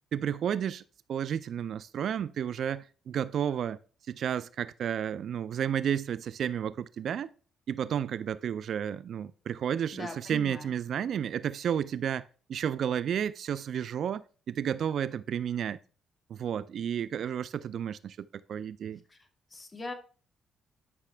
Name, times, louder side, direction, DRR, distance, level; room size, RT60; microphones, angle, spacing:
voice 1, 0.1-0.8 1.1-3.8 4.1-7.3 7.7-12.2 12.5-15.8 16.3-19.0, right 8 dB, 65° right, 0.4 m, -32 dB
voice 2, 9.9-10.7 19.1-19.2 19.5-19.9, left 2 dB, 25° left, 2.0 m, -40 dB
12.0 x 5.8 x 3.3 m
cardioid pair, 90°, 0 cm